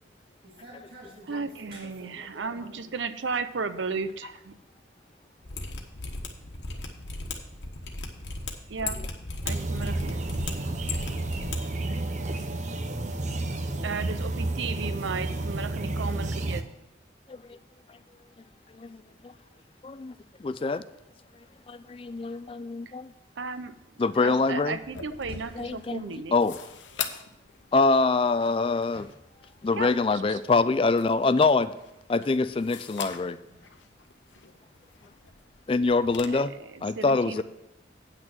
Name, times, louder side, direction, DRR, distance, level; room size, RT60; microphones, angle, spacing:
voice 1, 0.4-3.0 10.7-10.8 22.0-22.7 25.3-25.8 28.9-29.1 33.4-33.7 34.7-34.8, equal, 60° right, -5 dB, 1.9 m, -50 dB
voice 2, 1.3-4.6 8.7-9.0 9.4-10.2 13.8-16.7 23.4-26.4 27.0-27.1 29.7-30.4 36.2-37.4, right 4 dB, 80° right, 12 dB, 0.6 m, -35 dB
Mechanisms, 5.4-11.6 11.8-11.9, left 3 dB, 70° left, 1.3 m, -36 dB
sound 1, 9.5-16.6, right 2 dB, 40° right, 0.7 m, -31 dB
voice 3, 19.8-20.1 20.4-20.8 21.7-23.1 24.0-24.8 25.6-26.6 27.7-29.1 29.6-31.7 32.1-33.4 35.7-36.5 36.8-37.4, left 3 dB, 30° left, 14 dB, 0.3 m, -25 dB
sound 2, 24.7-36.3, left 7 dB, 90° left, 0.9 m, -43 dB
8.9 x 6.3 x 6.0 m, 0.85 s
head